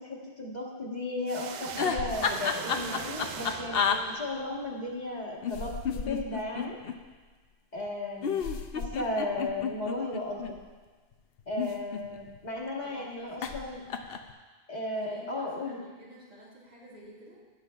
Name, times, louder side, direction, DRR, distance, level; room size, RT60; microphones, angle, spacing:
voice 1, 0.0-6.8 7.7-8.4 8.7-10.6 11.5-13.8 14.7-15.8, left 2 dB, 45° left, -3 dB, 1.6 m, -35 dB
sound 1, 1.3-4.6, right 7 dB, 55° right, 0.5 m, -41 dB
sound 2, 1.7-4.0 5.4-7.0 8.2-10.5 11.4-12.4 13.4-13.6 13.9-14.3, left 6 dB, 65° left, 0.9 m, -31 dB
voice 2, 12.8-13.6 14.9-17.5, equal, 85° right, -7 dB, 4.0 m, -51 dB
16.5 x 9.2 x 2.4 m, 1.4 s
omnidirectional pair, 1.1 m